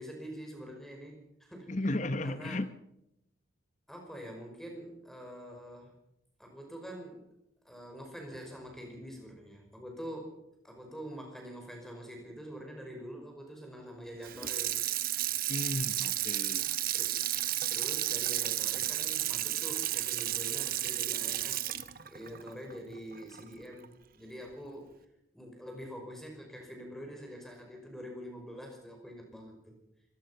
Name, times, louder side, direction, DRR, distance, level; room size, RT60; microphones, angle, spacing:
voice 1, 0.0-1.8 2.2-2.6 3.9-5.9 6.4-7.3 7.6-10.4 10.6-14.8 16.9-17.2 17.7-21.6 22.1-25.0 25.3-29.8, equal, ahead, 2 dB, 5.2 m, -45 dB
voice 2, 1.7-2.7 15.5-16.7, left 1 dB, 35° left, 12 dB, 0.9 m, -34 dB
Water tap faucet / Sink (filling or washing), 14.2-23.4 23.8-23.9, right 13 dB, 45° right, 0.9 m, -32 dB
26.0 x 18.0 x 5.7 m, 0.82 s
head